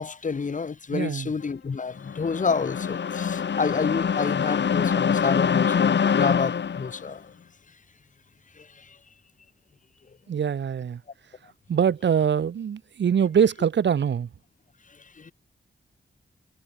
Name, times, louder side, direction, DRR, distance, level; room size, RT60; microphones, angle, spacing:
voice 1, 0.0-7.3 8.5-9.0 14.9-15.3, left 5 dB, 45° left, 2.7 m, -29 dB
voice 2, 0.9-1.3 10.3-11.0 11.7-14.3, right 7 dB, 75° right, 1.2 m, -23 dB
sound 1, 2.0-7.0, left 7 dB, 70° left, 2.5 m, -24 dB
wide cardioid pair, 175°, 19 cm